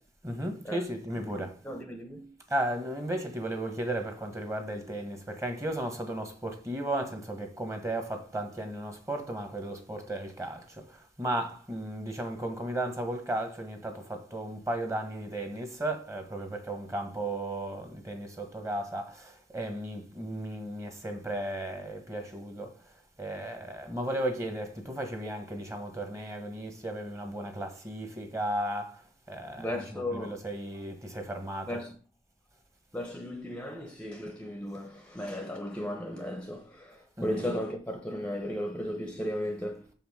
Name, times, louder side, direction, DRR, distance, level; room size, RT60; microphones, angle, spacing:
voice 1, 0.2-1.6 2.5-22.9 23.2-31.7 37.2-37.4, right 1 dB, 15° right, 1.4 m, -35 dB
voice 2, 1.3-2.4 29.6-30.3 31.7-31.9 32.9-39.9, left 1 dB, 5° left, 0.9 m, -35 dB
6.9 x 5.7 x 5.7 m
head